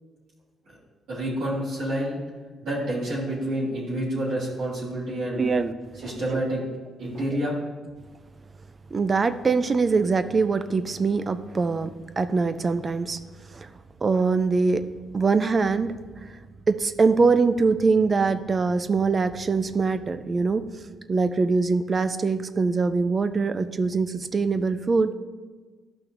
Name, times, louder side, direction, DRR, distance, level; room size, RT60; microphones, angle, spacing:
voice 1, 1.1-2.2 2.6-5.4 6.0-6.6 7.0-7.6, right 1 dB, 75° right, -9 dB, 2.5 m, -28 dB
voice 2, 5.4-5.7 8.9-13.2 13.5-13.7 14.0-14.8 15.1-15.9 16.7-20.6 21.1-25.1, right 4 dB, 35° right, 11 dB, 0.4 m, -23 dB
12.0 x 5.8 x 2.6 m, 1.4 s
cardioid pair, 90°, 0 cm